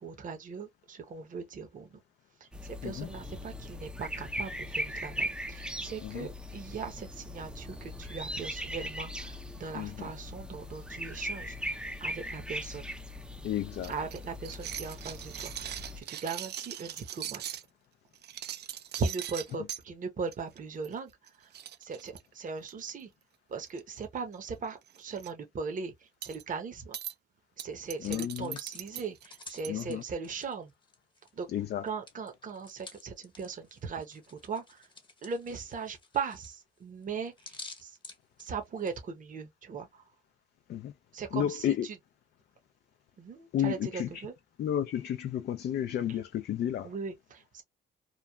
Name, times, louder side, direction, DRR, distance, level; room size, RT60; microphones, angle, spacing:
voice 1, 0.0-2.0 2.4-12.9 13.9-17.4 18.9-21.1 21.4-21.5 21.8-23.1 23.5-27.0 27.6-30.7 31.3-31.5 31.8-34.9 35.2-38.0 38.4-40.0 41.1-42.0 43.2-44.3 46.1-46.2 46.8-47.6, right 5 dB, 40° right, 0.8 m, -39 dB
sound 1, 2.5-16.0, equal, 5° right, 0.5 m, -39 dB
voice 2, 6.0-6.3 9.7-10.1 13.4-13.9 28.0-28.6 29.7-30.0 31.5-31.9 40.7-40.9 41.3-41.9 43.5-44.3 44.6-46.9, left 10 dB, 55° left, 0.4 m, -32 dB
sound 2, 13.8-17.6 18.1-19.8 20.3-20.6 20.8-21.0 21.3-21.4 21.5-22.9 23.7-24.0 24.3-24.5 24.9-25.3 26.2-26.4 26.9-27.1 27.6-29.8, right 11 dB, 55° right, 0.4 m, -40 dB
Hands, 27.7-31.4 31.7-39.0, left 3 dB, 25° left, 0.9 m, -51 dB
3.0 x 2.2 x 2.2 m
cardioid pair, 90°, 20 cm